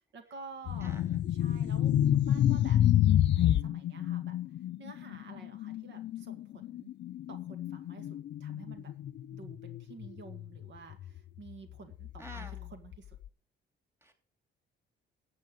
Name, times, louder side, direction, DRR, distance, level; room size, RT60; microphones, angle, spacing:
voice 1, 0.1-1.0 1.3-2.8 3.3-4.4 4.8-6.9 7.3-8.9 9.3-13.2, right 4 dB, 70° right, 7 dB, 2.2 m, -50 dB
sound 1, 0.7-10.6 10.9-11.2 11.9-12.9, left 11 dB, 65° left, 0.6 m, -29 dB
voice 2, 0.8-1.2 12.2-12.7 14.0-14.1, equal, 15° right, 5 dB, 3.0 m, -48 dB
13.0 x 8.4 x 5.3 m, 0.41 s
cardioid pair, 90°, 20 cm